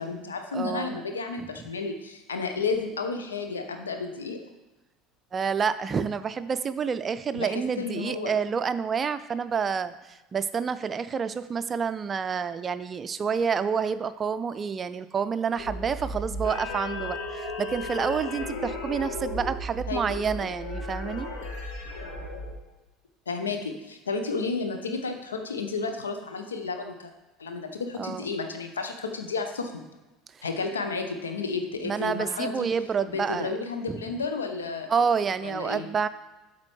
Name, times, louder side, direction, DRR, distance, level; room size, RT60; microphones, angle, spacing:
voice 1, 0.0-4.4 7.3-8.3 19.9-20.4 23.3-27.1 27.4-29.8 30.4-32.7 33.0-34.9 35.4-35.9, left 4 dB, 75° left, 5 dB, 0.8 m, -32 dB
voice 2, 0.5-1.0 1.4-1.5 5.3-21.3 28.0-28.3 30.3-30.4 31.8-33.5 33.9-34.0 34.9-36.1, right 6 dB, 30° right, 13 dB, 0.4 m, -28 dB
sound 1, 15.6-22.6, left 1 dB, 60° left, 1.3 m, -35 dB
12.0 x 4.2 x 3.2 m, 1.1 s
figure-of-eight pair, 70°, 0 cm